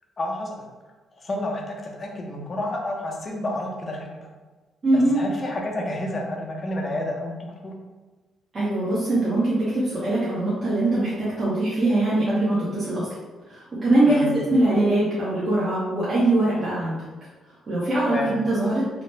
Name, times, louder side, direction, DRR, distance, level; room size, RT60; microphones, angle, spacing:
voice 1, 0.2-0.6 1.2-4.3 4.9-7.7 14.1-14.3 18.1-18.3, left 1 dB, 35° left, 0 dB, 0.6 m, -30 dB
voice 2, 4.8-5.2 8.5-13.1 13.5-17.0 17.7-18.8, right 1 dB, 35° right, -9 dB, 0.8 m, -22 dB
2.8 x 2.0 x 3.2 m, 1.3 s
cardioid pair, 90°, 0 cm